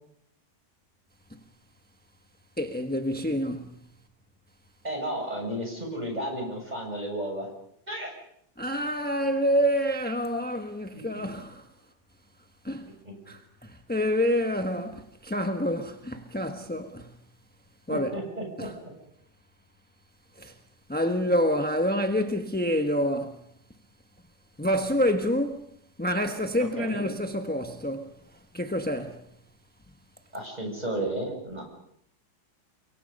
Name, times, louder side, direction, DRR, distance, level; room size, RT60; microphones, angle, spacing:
voice 1, 2.6-3.7 8.6-11.7 12.6-12.9 13.3-17.1 17.9-18.2 18.6-18.7 20.4-20.6 20.9-23.4 24.6-25.7 26.0-29.3, equal, 5° left, 0.8 m, -27 dB
voice 2, 4.8-7.5 7.9-8.2 11.1-11.3 13.0-13.1 17.9-18.9 26.8-27.0 30.3-31.6, right 1 dB, 20° right, 7.6 m, -33 dB
30.0 x 23.5 x 5.4 m
omnidirectional pair, 2.3 m